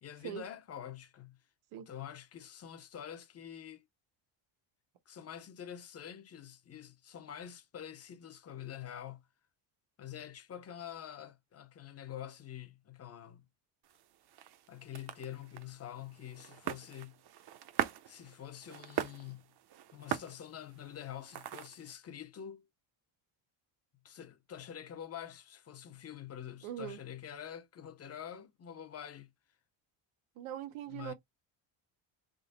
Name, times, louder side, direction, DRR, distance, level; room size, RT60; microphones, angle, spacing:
voice 1, 0.0-1.4 1.7-3.8 5.1-9.3 10.0-13.5 14.7-17.2 18.1-19.5 19.9-22.7 24.0-29.3 30.9-31.1, left 10 dB, 30° left, 0.7 m, -46 dB
sound 1, 13.8-21.9, right 11 dB, 50° right, 0.7 m, -42 dB
voice 2, 26.6-27.0 30.4-31.1, right 11 dB, 85° right, 1.2 m, -41 dB
3.8 x 2.9 x 4.0 m
cardioid pair, 145°, 50 cm